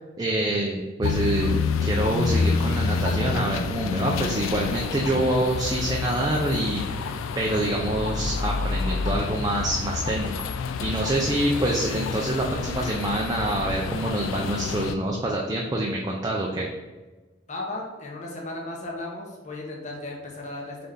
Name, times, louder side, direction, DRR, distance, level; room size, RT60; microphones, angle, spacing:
voice 1, 0.0-10.3 10.8-16.7, right 1 dB, 20° right, -1 dB, 0.4 m, -26 dB
sound 1, 1.0-15.0, left 4 dB, 80° left, 0.3 m, -28 dB
voice 2, 17.5-20.8, left 2 dB, 35° left, -1 dB, 0.8 m, -35 dB
3.9 x 3.3 x 3.7 m, 1.2 s
head